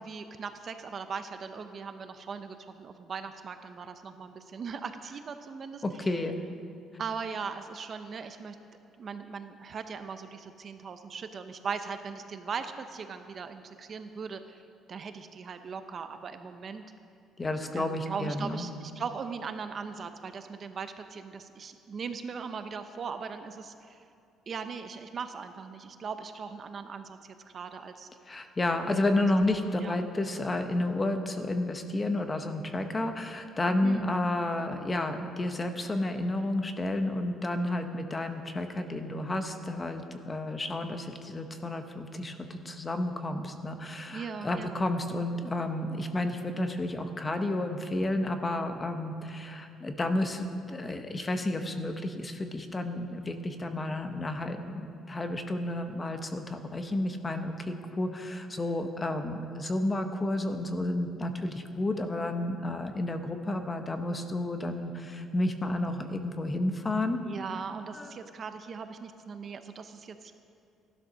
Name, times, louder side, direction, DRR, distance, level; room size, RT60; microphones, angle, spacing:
voice 1, 0.0-6.0 7.0-8.6 9.0-14.6 14.9-16.8 17.7-24.0 24.5-28.1 29.0-29.1 29.8-30.0 33.8-34.2 44.1-44.8 67.2-70.3, right 5 dB, 30° right, 8 dB, 0.6 m, -39 dB
voice 2, 5.8-6.4 17.4-18.7 28.3-67.2 67.9-68.1, left 1 dB, 15° left, 7 dB, 0.8 m, -31 dB
15.0 x 11.5 x 6.2 m, 2.6 s
cardioid pair, 180°, 0 cm